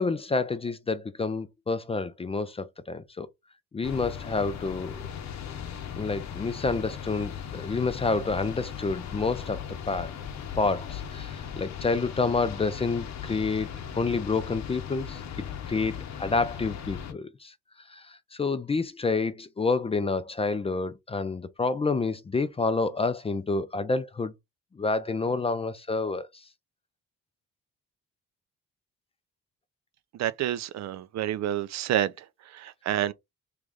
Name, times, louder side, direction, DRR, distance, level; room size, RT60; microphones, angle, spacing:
voice 1, 0.0-3.3 3.7-5.0 6.0-10.1 10.6-17.5 17.9-24.3 24.7-26.4, left 4 dB, 20° left, 0.4 m, -29 dB
sound 1, 3.8-17.1, left 8 dB, 65° left, 0.8 m, -38 dB
voice 2, 30.2-33.1, right 11 dB, 65° right, 0.5 m, -29 dB
3.2 x 2.5 x 3.4 m
cardioid pair, 90°, 30 cm